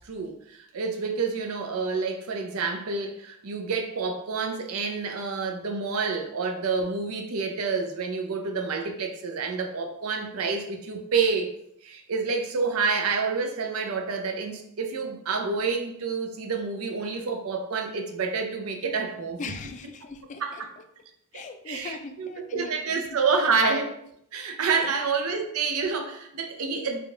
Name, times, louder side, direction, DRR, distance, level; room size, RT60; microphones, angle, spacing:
voice 1, 0.0-11.5 11.8-19.4 20.4-20.5 21.3-23.9 24.3-27.0, right 4 dB, 75° right, 4 dB, 0.6 m, -28 dB
voice 2, 19.4-20.8 21.3-23.0 24.7-24.9, left 4 dB, 35° left, 7 dB, 0.4 m, -40 dB
3.5 x 2.4 x 3.7 m, 0.72 s
head